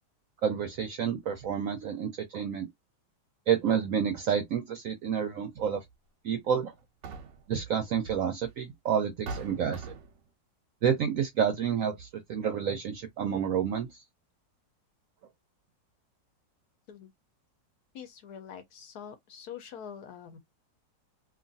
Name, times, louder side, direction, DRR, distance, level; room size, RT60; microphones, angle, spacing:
voice 1, 0.4-2.7 3.5-5.8 6.2-6.7 7.5-9.9 10.8-13.9, right 8 dB, 70° right, 0.8 m, -29 dB
sound 1, 5.6-5.8 6.8-7.6 8.6-8.7 9.3-10.3, right 3 dB, 90° right, 1.3 m, -41 dB
voice 2, 17.9-20.4, left 8 dB, 70° left, 1.1 m, -45 dB
3.0 x 2.5 x 2.6 m
omnidirectional pair, 1.9 m